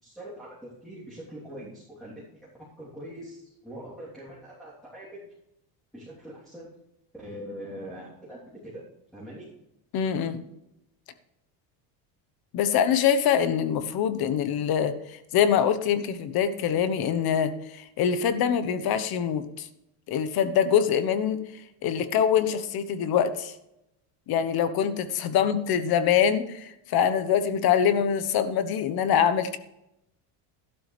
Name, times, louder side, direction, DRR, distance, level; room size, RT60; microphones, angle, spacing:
voice 1, 0.0-2.5 2.8-5.2 5.9-6.7 7.1-8.8 9.1-9.5 25.3-25.4, equal, ahead, -9 dB, 3.3 m, -42 dB
voice 2, 9.9-10.4 12.5-19.7 20.1-21.4 21.8-23.5 24.3-29.6, left 8 dB, 50° left, 12 dB, 1.2 m, -24 dB
12.5 x 11.5 x 3.4 m, 0.85 s
cardioid pair, 135°, 45 cm